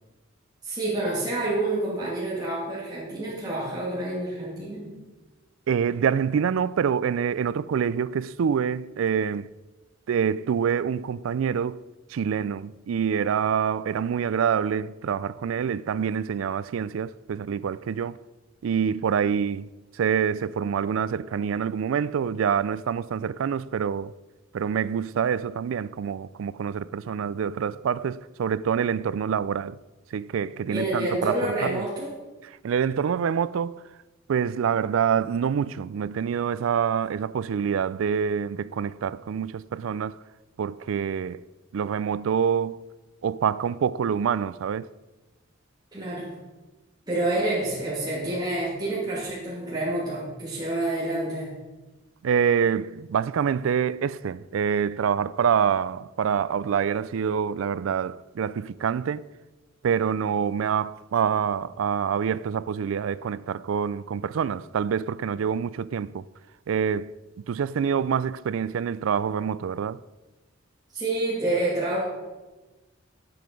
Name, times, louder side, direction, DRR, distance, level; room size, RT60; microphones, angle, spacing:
voice 1, 0.6-4.9 30.7-32.2 45.9-46.4 47.1-51.5 70.9-72.0, right 2 dB, 20° right, 2.4 m, -28 dB
voice 2, 5.7-9.5 10.1-11.8 12.1-18.2 18.6-24.1 24.5-29.8 30.1-31.8 32.6-33.8 34.3-40.2 40.6-41.4 41.7-42.8 43.2-44.9 52.2-59.3 59.8-66.2 66.7-67.1 67.5-70.0, right 7 dB, 85° right, 0.3 m, -26 dB
9.5 x 7.8 x 5.2 m
head